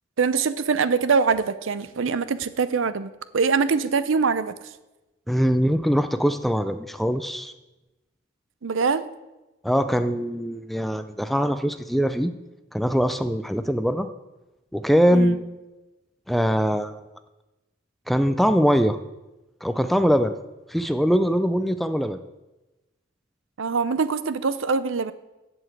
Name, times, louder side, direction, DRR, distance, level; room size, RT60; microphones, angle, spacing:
voice 1, 0.2-4.5 8.6-9.0 15.1-15.4 23.6-25.1, right 5 dB, 75° right, 14 dB, 0.6 m, -23 dB
voice 2, 5.3-7.5 9.6-12.3 12.7-14.1 14.7-15.4 16.3-17.0 18.1-19.0 19.6-20.4 20.7-22.2, equal, ahead, 10 dB, 0.3 m, -22 dB
8.0 x 7.6 x 7.8 m, 1.0 s
head